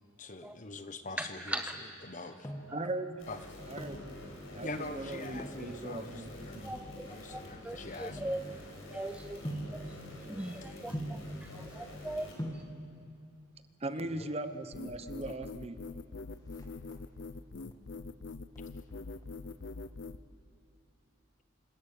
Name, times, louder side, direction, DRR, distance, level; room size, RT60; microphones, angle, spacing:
voice 1, 0.2-1.4 2.0-2.5 3.3-3.4 4.6-6.7 7.1-8.3 14.0-14.3, left 2 dB, 40° left, 9 dB, 1.2 m, -43 dB
voice 2, 1.2-1.8 2.7-2.9 6.6-8.4 8.9-9.4 9.7-12.6, right 1 dB, 5° right, 7 dB, 0.5 m, -40 dB
sound 1, 2.2-2.8 3.6-4.1 5.3-5.7 6.4-8.8 9.4-9.8 10.9-11.3 12.1-12.2 12.4-12.7 13.9-14.4 14.7-14.8 15.0-15.2 15.5-15.9 16.2-17.3 17.7-18.1 18.5-19.7 19.9-20.0, equal, 20° left, 2.1 m, -42 dB
voice 3, 2.7-3.3 3.7-4.1 4.5-6.7 13.8-15.8, right 2 dB, 30° right, 10 dB, 0.9 m, -39 dB
sound 2, 3.2-12.3, left 1 dB, 90° left, 5.5 m, -47 dB
sound 3, 14.7-20.2, left 3 dB, 60° left, 0.6 m, -43 dB
27.0 x 14.0 x 8.8 m, 2.6 s
head